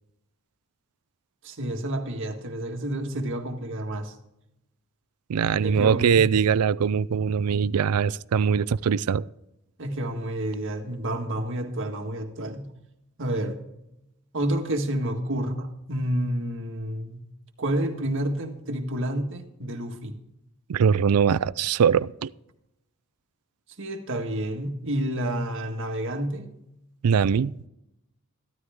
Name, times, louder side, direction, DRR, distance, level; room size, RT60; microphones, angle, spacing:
voice 1, 1.4-4.1 5.6-6.3 9.8-12.7 13.2-13.6 14.3-17.2 17.6-20.2 23.8-26.5, right 1 dB, 60° right, 1.7 m, -29 dB
voice 2, 5.3-9.2 20.7-22.3 27.0-27.5, right 7 dB, 80° right, 0.4 m, -22 dB
14.5 x 12.5 x 3.6 m
head